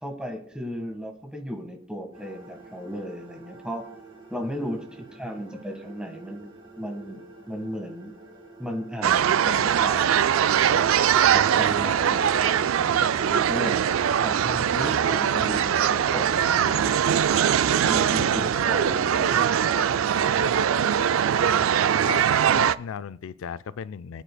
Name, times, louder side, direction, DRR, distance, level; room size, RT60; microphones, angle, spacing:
voice 1, 0.0-3.8 4.3-8.1 8.6-10.7 11.3-13.8 14.2-16.9 17.9-19.5, equal, 5° right, 1.6 m, -35 dB
sound 1, 2.1-21.0, right 2 dB, 25° right, 3.9 m, -44 dB
sound 2, 9.0-22.7, right 8 dB, 80° right, 0.4 m, -22 dB
voice 2, 22.5-24.2, left 7 dB, 75° left, 0.4 m, -36 dB
24.0 x 9.0 x 2.3 m
head